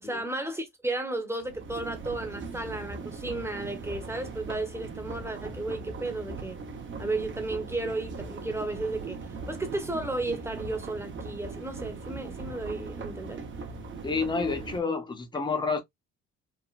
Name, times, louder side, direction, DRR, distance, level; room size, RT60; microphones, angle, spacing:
voice 1, 0.0-6.6 7.0-9.2 9.5-13.4, right 2 dB, 10° right, 0.9 m, -34 dB
sound 1, 1.4-14.8, right 4 dB, 40° right, 0.7 m, -39 dB
voice 2, 14.0-15.8, left 4 dB, 15° left, 0.7 m, -29 dB
3.2 x 2.1 x 2.3 m
cardioid pair, 90°, 30 cm